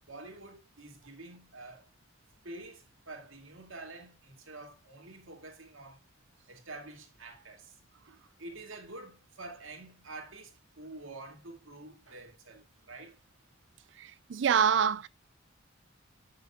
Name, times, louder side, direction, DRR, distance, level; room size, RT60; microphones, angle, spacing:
voice 1, 0.0-1.9 2.4-6.0 6.5-7.8 8.1-13.2, right 2 dB, 80° right, 2.1 m, -47 dB
voice 2, 14.0-15.1, right 7 dB, 60° right, 0.4 m, -26 dB
9.6 x 6.4 x 2.3 m
head